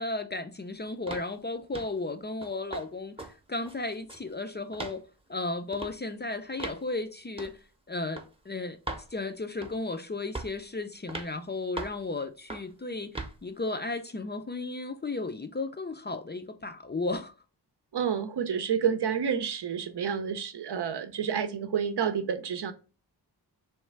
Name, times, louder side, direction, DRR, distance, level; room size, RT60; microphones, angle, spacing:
voice 1, 0.0-5.0 5.3-7.5 7.9-8.8 9.1-13.1 13.4-17.3, left 2 dB, 25° left, 0.4 m, -34 dB
sound 1, 1.1-1.3 1.7-2.0 2.4-2.9 3.2-3.3 3.7-4.3 4.7-5.0 5.7-5.9 6.6-6.8 7.4-7.6 8.2-8.3 8.9-9.1 9.6-9.9 10.3-10.6 11.1-11.3 11.8-12.0 12.5-12.7 13.1-13.4, right 2 dB, 15° right, 0.7 m, -38 dB
voice 2, 17.9-22.7, right 7 dB, 70° right, 0.7 m, -29 dB
3.2 x 3.2 x 4.5 m
wide cardioid pair, 85°, 42 cm